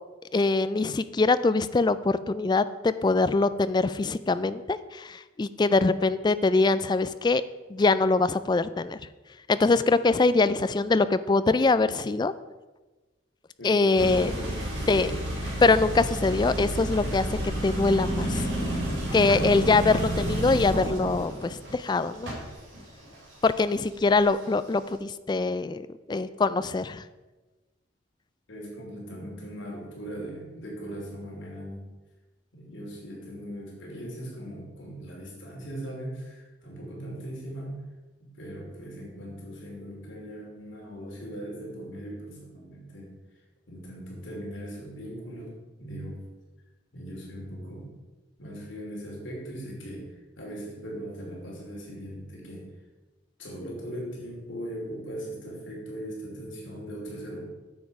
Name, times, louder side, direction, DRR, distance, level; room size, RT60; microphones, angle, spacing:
voice 1, 0.3-7.4 7.7-9.0 9.5-12.3 13.6-14.3 14.9-15.1 15.6-17.3 17.6-18.5 19.1-22.3 23.4-25.8 26.1-27.0, left 3 dB, 25° left, 14 dB, 0.3 m, -23 dB
voice 2, 13.6-15.2 28.5-31.8 32.5-37.8 38.2-43.1 43.7-45.5 45.8-46.2 46.9-47.9 48.4-52.7 53.4-57.4, equal, 80° left, -2 dB, 2.9 m, -39 dB
sound 1, 14.0-24.5, right 1 dB, 65° right, 3.4 m, -30 dB
9.4 x 7.0 x 4.7 m, 1.2 s
head